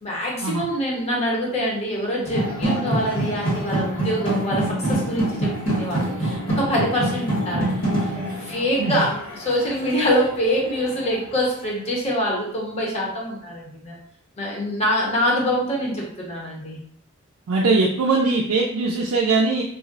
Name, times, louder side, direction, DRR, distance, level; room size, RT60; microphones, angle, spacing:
voice 1, 0.0-7.9 8.4-9.2 9.4-14.0 14.4-16.8, equal, 30° left, -3 dB, 0.7 m, -25 dB
sound 1, 2.2-11.1, right 1 dB, 65° left, 1.2 m, -26 dB
voice 2, 17.5-19.6, right 3 dB, 75° right, -1 dB, 0.4 m, -21 dB
2.4 x 2.0 x 3.8 m, 0.65 s
head